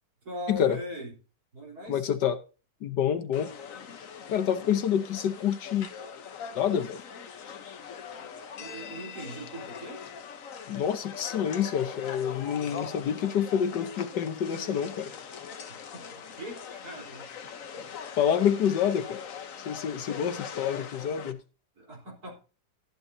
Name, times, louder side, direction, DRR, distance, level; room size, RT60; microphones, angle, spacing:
voice 1, 0.2-1.1 1.5-2.1 8.6-10.0 15.7-17.3 20.1-20.3 21.8-22.4, equal, 65° right, 4.7 m, -41 dB
voice 2, 1.9-2.4 2.8-3.5 4.3-5.9 6.6-7.0 10.7-15.1 18.2-19.2 19.7-21.4, left 8 dB, 85° left, 1.7 m, -27 dB
sound 1, 3.3-21.3, left 7 dB, 55° left, 1.3 m, -41 dB
13.5 x 12.0 x 2.8 m
omnidirectional pair, 1.8 m